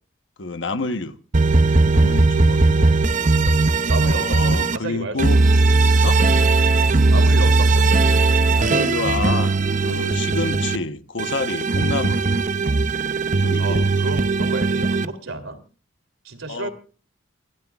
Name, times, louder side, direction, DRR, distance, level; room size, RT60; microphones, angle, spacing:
voice 1, 0.4-1.2 1.9-3.0 4.0-5.4 6.0-6.2 8.5-9.5 9.8-12.3 13.3-13.9 16.5-16.7, left 3 dB, 65° left, 1.1 m, -28 dB
sound 1, 1.3-4.8 5.2-10.8 11.2-15.1, right 3 dB, 40° right, 0.7 m, -18 dB
voice 2, 3.9-5.3 7.1-7.9 9.9-10.1 13.6-15.6 16.2-16.7, right 2 dB, 85° right, 3.1 m, -31 dB
29.0 x 12.0 x 2.4 m
head